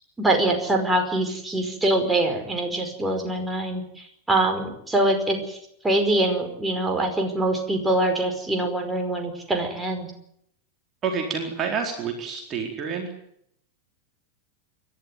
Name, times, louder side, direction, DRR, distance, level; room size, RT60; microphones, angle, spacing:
voice 1, 0.2-5.6 5.8-10.1, right 1 dB, 10° right, 3 dB, 5.0 m, -24 dB
voice 2, 11.0-13.1, right 6 dB, 30° right, 2 dB, 4.3 m, -28 dB
28.5 x 12.5 x 9.6 m, 0.73 s
figure-of-eight pair, 90°, 0 cm